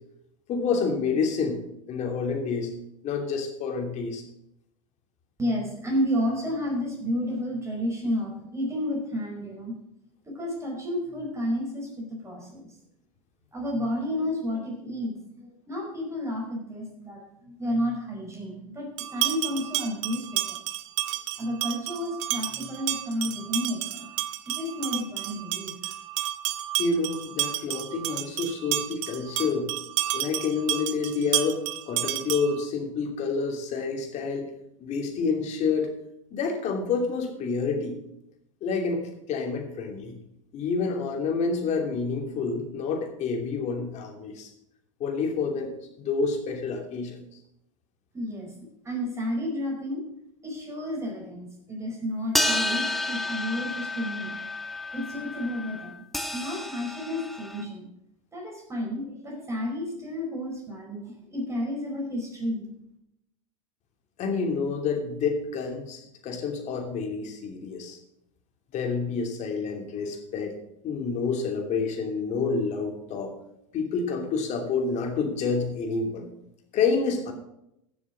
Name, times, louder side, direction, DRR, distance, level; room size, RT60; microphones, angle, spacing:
voice 1, 0.5-1.6 1.9-2.7 3.0-4.2 26.8-29.7 30.1-34.5 34.8-35.9 36.3-38.0 38.6-39.0 39.3-40.2 40.5-44.5 45.0-47.2 64.2-68.0 68.7-70.6 70.8-73.3 73.7-76.3 76.7-77.3, left 4 dB, 45° left, 3 dB, 2.9 m, -28 dB
voice 2, 5.4-9.7 10.3-12.7 13.5-20.6 21.4-24.1 24.5-25.9 48.1-48.5 48.8-50.0 50.4-54.3 54.9-55.9 56.3-57.9 58.3-62.7, left 1 dB, 15° right, -1 dB, 5.1 m, -31 dB
sound 1, 19.0-32.6, right 15 dB, 60° right, 0.9 m, -31 dB
sound 2, 52.3-57.6, left 1 dB, ahead, 1.2 m, -30 dB
14.5 x 7.2 x 6.1 m, 0.80 s
hypercardioid pair, 90°, 17 cm